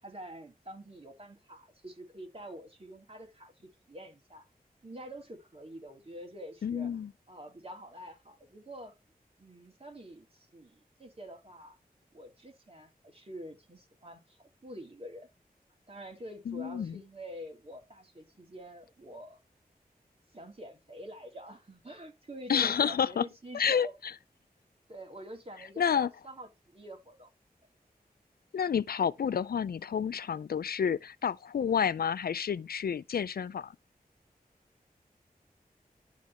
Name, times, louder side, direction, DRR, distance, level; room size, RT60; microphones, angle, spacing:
voice 1, 0.0-4.5 4.8-7.0 7.3-8.9 9.4-11.8 12.1-15.3 15.9-19.4 20.3-24.0 24.9-27.3, equal, 40° right, 3.1 m, -47 dB
voice 2, 6.6-7.1 16.5-17.0 22.5-23.3 23.5-24.1 25.8-26.1 28.5-33.8, left 7 dB, 80° left, 0.4 m, -29 dB
11.5 x 3.9 x 4.3 m
wide cardioid pair, 55°, 16 cm